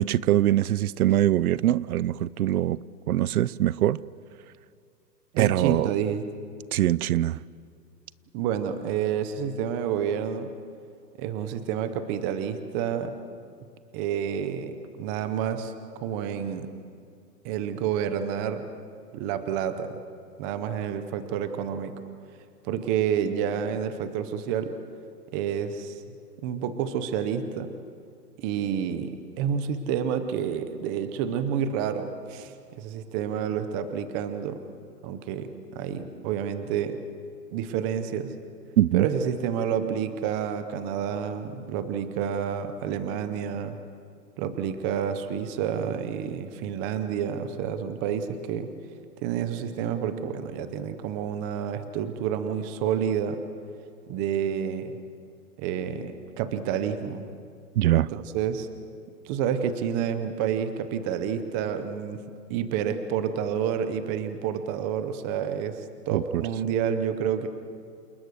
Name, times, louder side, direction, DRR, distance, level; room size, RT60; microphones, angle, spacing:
voice 1, 0.0-2.8 3.1-4.0 5.4-5.9 6.7-7.4 38.8-39.1 57.8-58.1 66.1-66.4, right 13 dB, 60° right, 0.6 m, -23 dB
voice 2, 5.3-6.2 8.3-10.5 11.2-13.2 13.9-16.7 17.4-18.7 19.1-20.0 20.4-21.9 22.6-24.7 25.3-26.2 26.4-27.7 28.4-34.6 35.0-37.0 37.5-38.3 38.9-43.8 44.4-48.7 49.2-53.4 54.1-55.0 55.6-57.2 57.9-58.7 59.2-62.2 62.5-67.5, right 8 dB, 15° right, 0.5 m, -29 dB
28.0 x 19.5 x 6.4 m
hypercardioid pair, 145°, 49 cm